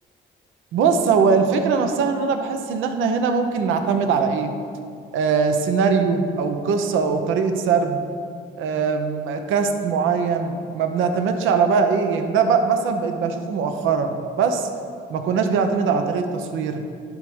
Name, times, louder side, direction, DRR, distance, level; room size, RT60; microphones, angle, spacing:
voice 1, 0.7-4.5 5.1-8.0 8.6-14.7 15.1-16.8, right 5 dB, 90° right, 6 dB, 0.7 m, -21 dB
10.5 x 3.6 x 6.2 m, 2.3 s
cardioid pair, 90°, 20 cm